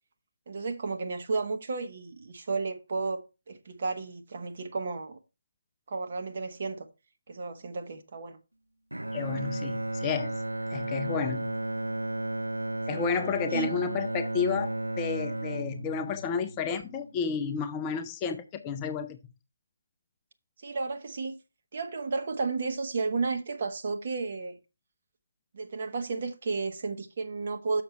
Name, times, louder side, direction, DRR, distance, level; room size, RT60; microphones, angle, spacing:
voice 1, 0.5-5.2 5.9-6.9 7.3-8.4 12.9-13.0 13.5-13.7 20.6-21.4 21.7-24.6 25.5-27.8, right 4 dB, 45° right, 1.2 m, -33 dB
Bowed string instrument, 8.9-17.1, right 2 dB, 85° right, 0.4 m, -34 dB
voice 2, 9.1-10.4 10.7-11.5 12.9-19.2, left 6 dB, 15° left, 0.5 m, -31 dB
6.7 x 6.4 x 4.4 m
figure-of-eight pair, 150°, 0 cm